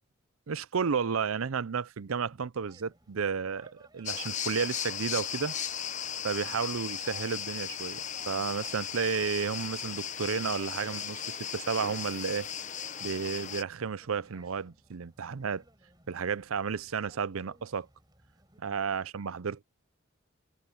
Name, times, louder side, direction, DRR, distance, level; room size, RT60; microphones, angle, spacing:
voice 1, 0.5-5.5 6.2-12.5 13.0-15.6 16.1-17.9 18.6-19.6, right 6 dB, 90° right, 0.6 m, -32 dB
sound 1, 2.6-18.6, right 1 dB, 20° right, 6.3 m, -60 dB
sound 2, 4.1-13.6, left 9 dB, 35° left, 1.0 m, -36 dB
head